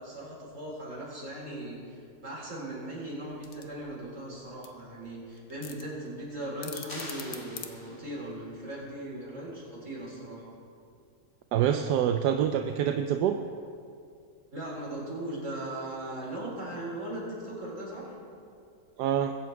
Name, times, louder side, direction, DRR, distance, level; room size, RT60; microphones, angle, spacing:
voice 1, 0.0-10.4 14.5-18.2, right 1 dB, 50° right, -6 dB, 4.5 m, -38 dB
sound 1, 3.3-8.5, left 8 dB, 85° left, 1.5 m, -46 dB
sound 2, 6.9-8.4, left 1 dB, 40° left, 2.4 m, -44 dB
voice 2, 11.5-13.4 19.0-19.3, right 9 dB, 85° right, 6 dB, 1.2 m, -26 dB
21.5 x 8.0 x 4.6 m, 2.4 s
omnidirectional pair, 1.7 m